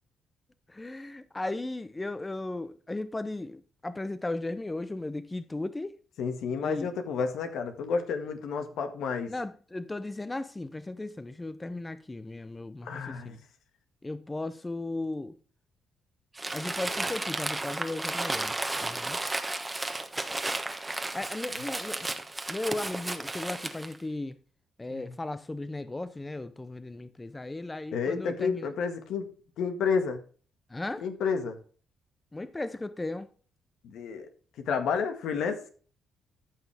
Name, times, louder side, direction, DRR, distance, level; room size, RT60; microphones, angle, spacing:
voice 1, 0.7-6.0 6.6-6.9 9.3-13.4 14.0-15.4 16.5-19.2 21.1-22.1 22.5-24.4 24.8-28.7 30.7-31.0 32.3-33.3, left 2 dB, 15° left, 0.6 m, -36 dB
voice 2, 6.2-9.3 12.8-13.4 24.9-25.1 27.9-29.3 29.6-30.2 31.0-31.6 33.8-34.3 34.7-35.6, left 5 dB, 80° left, 1.7 m, -30 dB
Crumpling crinkling, 16.4-24.0, right 2 dB, 15° right, 1.2 m, -33 dB
13.5 x 6.1 x 3.4 m
cardioid pair, 90°, 0 cm